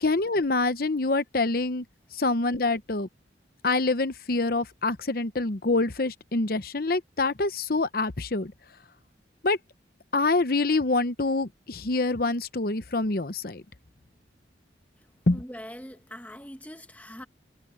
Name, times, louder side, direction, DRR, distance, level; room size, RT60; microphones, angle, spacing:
voice 1, 0.0-1.8 2.1-3.1 3.6-8.5 9.4-9.6 10.1-13.6 15.3-15.4, left 3 dB, 55° left, 0.9 m, -26 dB
voice 2, 15.0-17.3, equal, 10° left, 1.7 m, -43 dB
head